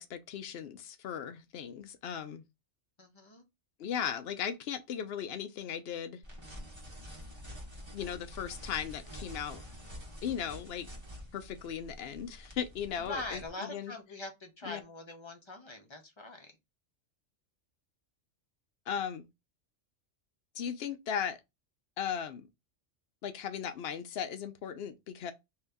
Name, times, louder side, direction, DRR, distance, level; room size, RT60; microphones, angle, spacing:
voice 1, 0.0-2.4 3.8-6.2 7.9-9.6 10.2-10.9 11.3-13.9 14.6-14.8 18.9-19.3 20.6-21.4 22.0-22.5 23.2-25.3, left 8 dB, 65° left, 0.7 m, -37 dB
voice 2, 3.0-3.4 13.0-16.6, left 2 dB, 30° left, 0.6 m, -43 dB
sound 1, 6.2-13.5, equal, 25° right, 0.8 m, -47 dB
2.8 x 2.7 x 3.4 m
omnidirectional pair, 1.3 m